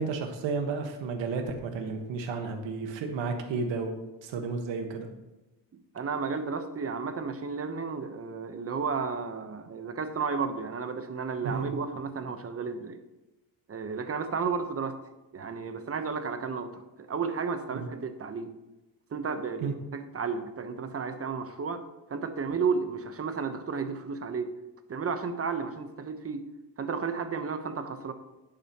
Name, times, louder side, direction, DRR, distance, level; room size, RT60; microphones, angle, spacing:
voice 1, 0.0-5.1 11.4-11.6 17.7-17.9 19.6-19.7, right 4 dB, 90° right, 5 dB, 1.5 m, -32 dB
voice 2, 5.7-13.0 13.7-15.0 15.3-18.5 19.1-21.8 22.1-24.5 24.9-26.5 26.8-28.1, right 5 dB, 30° right, 8 dB, 1.0 m, -33 dB
12.0 x 8.8 x 3.0 m, 1.0 s
cardioid pair, 120°, 43 cm